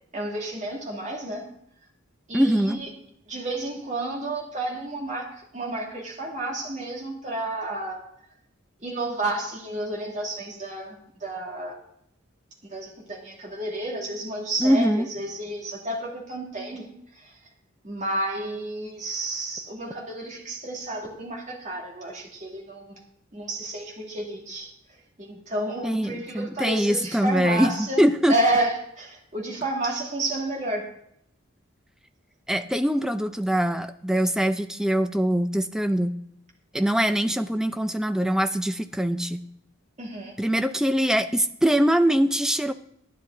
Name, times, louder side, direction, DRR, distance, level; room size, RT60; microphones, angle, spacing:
voice 1, 0.1-1.4 2.3-2.9 3.3-5.3 5.5-8.0 8.8-11.0 11.2-11.8 12.7-16.9 17.2-17.3 17.8-22.9 23.3-24.7 25.2-28.0 28.3-30.9 40.0-40.3, right 1 dB, 35° right, -1 dB, 2.4 m, -31 dB
voice 2, 2.3-2.8 14.6-15.1 25.8-28.4 32.5-36.2 36.7-39.4 40.4-42.7, equal, 5° right, 9 dB, 0.4 m, -23 dB
10.5 x 10.5 x 3.9 m, 0.73 s
head